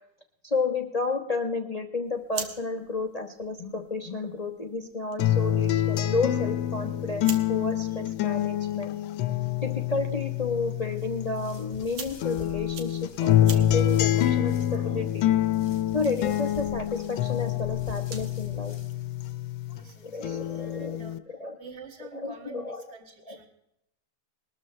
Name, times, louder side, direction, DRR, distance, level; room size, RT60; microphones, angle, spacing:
voice 1, 0.4-9.0 9.6-15.2 15.9-18.8 20.0-21.1 21.4-21.6 22.1-22.8 23.3-23.4, left 3 dB, 60° left, 5 dB, 0.4 m, -31 dB
sound 1, 2.0-18.4, right 5 dB, 90° right, 2.3 m, -47 dB
sound 2, 5.2-11.8 12.2-19.8 20.2-21.2, left 12 dB, 80° left, 1.5 m, -27 dB
voice 2, 8.6-9.0 19.7-21.2 21.6-23.5, right 4 dB, 35° right, 3 dB, 2.2 m, -48 dB
sound 3, 11.0-19.3, left 2 dB, 35° left, 1.2 m, -47 dB
21.0 x 13.0 x 3.2 m, 0.80 s
omnidirectional pair, 2.2 m